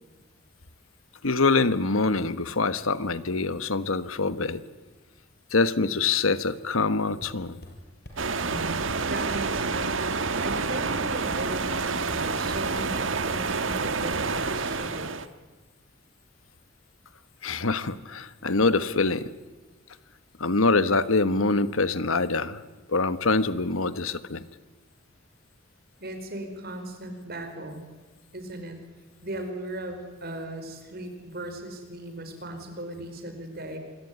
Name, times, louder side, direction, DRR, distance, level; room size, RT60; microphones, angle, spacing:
voice 1, 1.2-4.6 5.5-7.6 17.4-19.3 20.4-22.6 22.9-24.4, left 3 dB, 90° left, 14 dB, 1.3 m, -25 dB
sound 1, 7.2-7.8 8.0-8.2 8.5-8.6 8.9-9.0 9.3-9.4 9.7-11.0 11.3-11.9 12.1-12.7 12.9-14.2, equal, 50° left, 6.2 m, -46 dB
sound 2, 8.2-15.3, right 4 dB, 70° right, 1.5 m, -28 dB
voice 2, 8.4-15.2 26.0-27.9 28.3-28.8 29.2-33.8, right 1 dB, 50° right, 6 dB, 5.0 m, -38 dB
26.5 x 22.0 x 9.6 m, 1.3 s
head